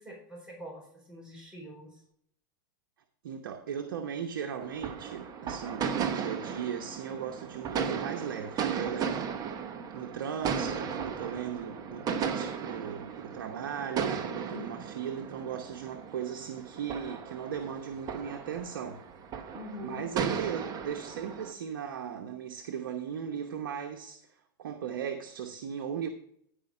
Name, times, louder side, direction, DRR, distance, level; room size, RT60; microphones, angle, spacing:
voice 1, 0.0-2.0 14.5-14.8 19.5-20.1, left 1 dB, 5° right, 4.1 m, -44 dB
voice 2, 3.2-9.4 9.9-19.0 19.8-24.3 24.6-26.1, right 8 dB, 80° right, 0.9 m, -37 dB
sound 1, 4.6-21.5, right 7 dB, 35° right, 1.0 m, -36 dB
10.0 x 5.1 x 5.4 m
hypercardioid pair, 120°, 11 cm